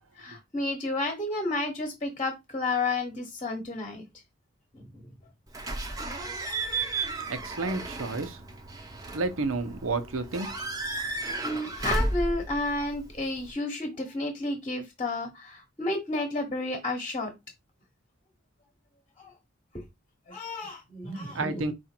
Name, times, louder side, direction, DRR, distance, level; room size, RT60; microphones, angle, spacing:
voice 1, 0.2-4.0 4.7-5.1 6.5-6.6 11.4-17.3 19.2-19.3 20.3-21.6, left 2 dB, 25° left, 1.0 m, -31 dB
Slam / Squeak / Alarm, 5.5-13.5, right 2 dB, 15° right, 0.6 m, -34 dB
voice 2, 7.3-8.4 9.1-10.5 21.3-21.7, right 3 dB, 85° right, 0.8 m, -30 dB
4.9 x 2.5 x 4.3 m
head